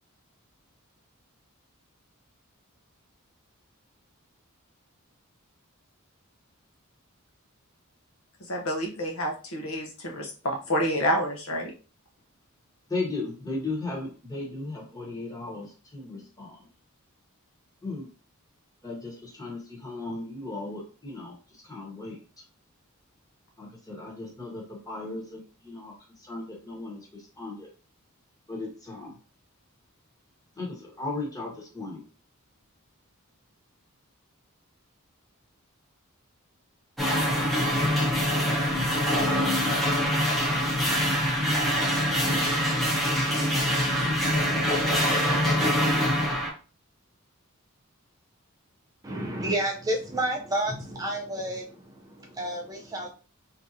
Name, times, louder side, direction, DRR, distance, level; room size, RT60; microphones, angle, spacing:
voice 1, 8.5-11.7, equal, 75° left, 1 dB, 0.8 m, -28 dB
voice 2, 12.9-16.7 17.8-18.1 18.8-22.4 23.6-27.7 28.5-29.2 30.6-32.0, left 2 dB, 15° left, -2 dB, 1.1 m, -36 dB
sound 1, 37.0-46.5, equal, ahead, 0.8 m, -24 dB
voice 3, 49.0-53.1, right 1 dB, 15° right, 1 dB, 0.4 m, -30 dB
3.5 x 2.8 x 2.6 m, 0.35 s
head